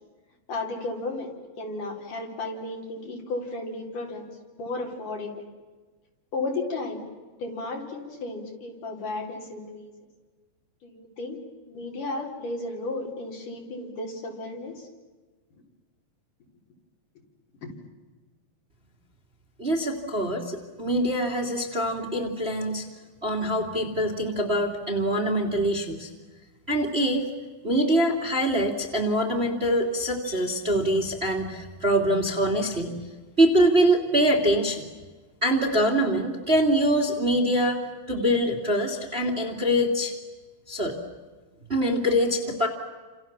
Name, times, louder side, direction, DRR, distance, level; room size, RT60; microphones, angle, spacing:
voice 1, 0.5-1.3 1.6-4.2 4.5-5.3 6.3-7.0 7.4-9.9 10.8-11.4 11.7-14.9 17.6-17.7, left 2 dB, 65° left, 1 dB, 5.5 m, -33 dB
voice 2, 19.6-22.8 23.2-26.1 26.7-27.3 27.6-33.0 33.4-34.9 35.4-37.8 38.1-40.1 40.7-41.0 41.7-42.7, equal, 20° right, 2 dB, 2.2 m, -24 dB
30.0 x 27.5 x 7.3 m, 1.3 s
omnidirectional pair, 4.1 m